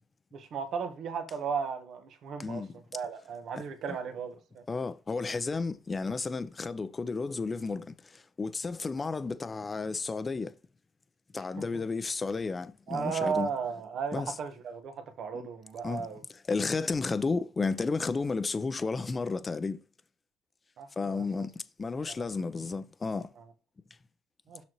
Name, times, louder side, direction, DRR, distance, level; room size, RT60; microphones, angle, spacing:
voice 1, 0.3-2.6 2.9-4.6 12.9-16.2 20.8-21.2 22.0-22.2 23.1-23.2 24.5-24.6, right 6 dB, 60° right, 1.4 m, -35 dB
voice 2, 2.4-2.8 3.9-4.0 4.7-10.5 11.3-13.5 14.1-14.4 15.3-15.5 15.8-19.8 21.0-23.3, left 4 dB, 30° left, 0.7 m, -32 dB
7.2 x 6.3 x 3.1 m
hypercardioid pair, 65°, 0 cm